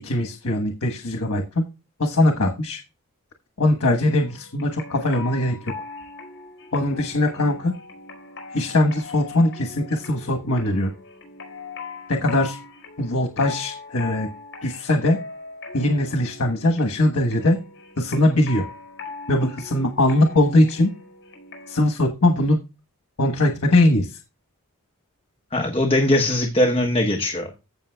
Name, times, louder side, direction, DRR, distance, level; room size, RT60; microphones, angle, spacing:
voice 1, 0.0-1.6 2.0-2.8 3.6-5.7 6.7-7.7 8.5-10.9 12.1-12.6 13.0-14.3 14.6-15.2 15.7-17.6 18.0-18.6 19.3-20.9 21.7-22.6 23.2-24.2, left 1 dB, 85° left, 3 dB, 1.3 m, -21 dB
sound 1, 4.2-21.8, left 4 dB, 55° left, 5.0 m, -40 dB
voice 2, 25.5-27.5, left 1 dB, 25° left, 3 dB, 1.1 m, -20 dB
15.5 x 6.2 x 2.3 m, 0.27 s
head